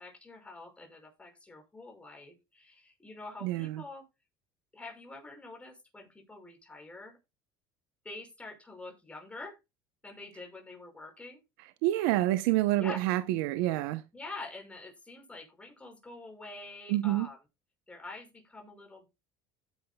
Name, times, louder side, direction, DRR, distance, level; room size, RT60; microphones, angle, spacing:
voice 1, 0.0-4.1 4.7-7.2 8.0-9.6 10.0-11.4 12.8-13.0 14.1-17.4 17.9-19.1, left 3 dB, 10° left, 5.7 m, -46 dB
voice 2, 3.4-3.8 11.8-14.0 16.9-17.3, right 15 dB, 85° right, 0.9 m, -28 dB
15.5 x 9.9 x 2.3 m
cardioid pair, 135°, 11 cm